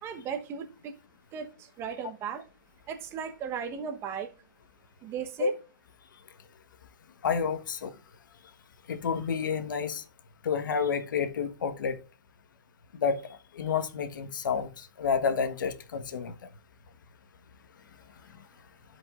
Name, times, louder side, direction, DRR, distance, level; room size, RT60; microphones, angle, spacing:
voice 1, 0.0-0.9 1.3-2.4 2.9-4.3 5.0-5.5, right 7 dB, 25° right, 1.1 m, -36 dB
voice 2, 7.2-7.9 8.9-10.0 10.4-12.0 12.9-13.2 13.5-16.3, left 6 dB, 70° left, 1.3 m, -29 dB
15.5 x 5.3 x 2.5 m
hypercardioid pair, 140°, 11 cm